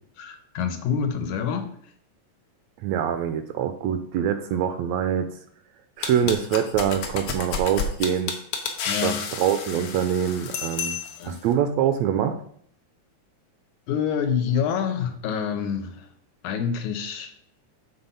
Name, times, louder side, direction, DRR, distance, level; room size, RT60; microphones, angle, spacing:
voice 1, 0.2-1.9 6.2-6.3 8.9-9.3 11.2-11.4 13.9-16.1 16.4-17.3, left 7 dB, 80° left, 7 dB, 2.4 m, -27 dB
voice 2, 2.8-5.3 6.0-8.3 9.0-9.1 9.4-11.0 11.2-12.4, right 9 dB, 75° right, 9 dB, 1.7 m, -24 dB
sound 1, 6.0-11.3, left 5 dB, 60° left, 1.6 m, -31 dB
8.0 x 4.1 x 5.6 m, 0.62 s
omnidirectional pair, 3.4 m